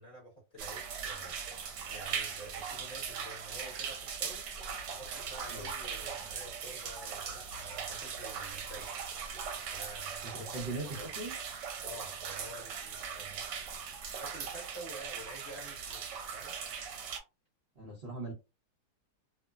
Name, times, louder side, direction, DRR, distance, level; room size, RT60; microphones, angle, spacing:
voice 1, 0.0-4.4 4.9-8.9 9.7-11.1 11.8-13.5 14.2-16.1 16.3-16.6, right 1 dB, 35° left, 1.2 m, -49 dB
sound 1, 0.6-17.2, right 6 dB, 80° right, 1.3 m, -40 dB
voice 2, 10.2-11.4 17.8-18.3, right 2 dB, 45° right, 0.8 m, -40 dB
3.0 x 2.0 x 2.3 m
omnidirectional pair, 1.9 m